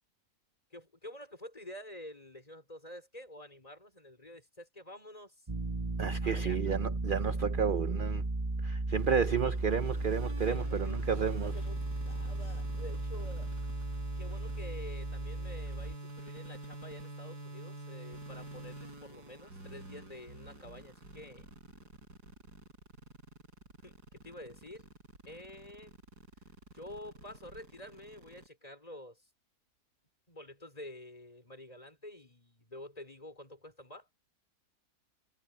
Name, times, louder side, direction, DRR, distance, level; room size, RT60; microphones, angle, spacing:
voice 1, 0.7-5.4 6.2-6.8 10.5-13.5 14.2-21.5 23.8-24.9 25.3-26.0 26.7-29.3 30.3-34.1, left 1 dB, 25° left, 5.3 m, -49 dB
sound 1, 5.5-15.9, right 2 dB, 20° right, 1.3 m, -35 dB
voice 2, 6.0-8.2 8.6-11.5, right 7 dB, 50° right, 0.6 m, -31 dB
sound 2, 9.0-28.5, right 2 dB, 90° right, 7.4 m, -47 dB
omnidirectional pair, 1.7 m